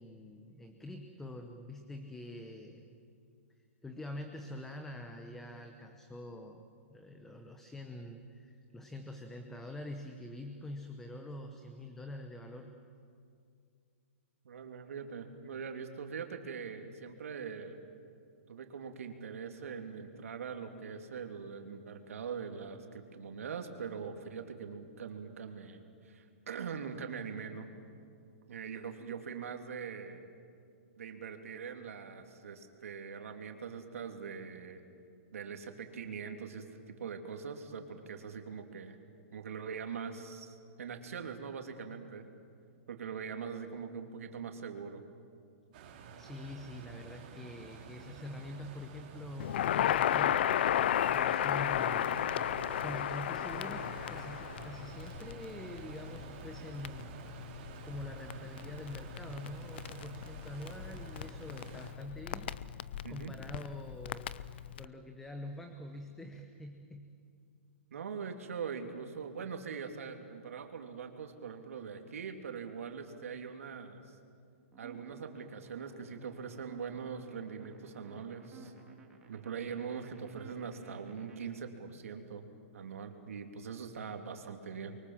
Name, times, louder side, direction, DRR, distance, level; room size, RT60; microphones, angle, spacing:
voice 1, 0.0-3.0 3.8-6.6 6.9-12.8 46.2-50.4 51.1-52.2 52.7-57.5 57.8-62.6 63.1-64.3 64.8-67.2, left 1 dB, 5° left, 6 dB, 0.9 m, -45 dB
voice 2, 14.4-17.8 18.5-27.7 28.5-30.2 31.0-34.8 35.3-36.6 37.0-39.0 39.3-42.3 42.9-45.0 63.0-63.3 67.9-74.2 74.8-78.7 79.3-85.0, right 6 dB, 80° right, 4 dB, 3.1 m, -42 dB
sound 1, 45.7-61.9, right 5 dB, 35° right, 3.0 m, -49 dB
Crackle, 49.4-64.9, left 10 dB, 50° left, 0.6 m, -34 dB
sound 2, 74.7-81.4, right 5 dB, 10° right, 2.9 m, -55 dB
29.0 x 23.5 x 7.4 m, 2.4 s
hypercardioid pair, 170°, 7 cm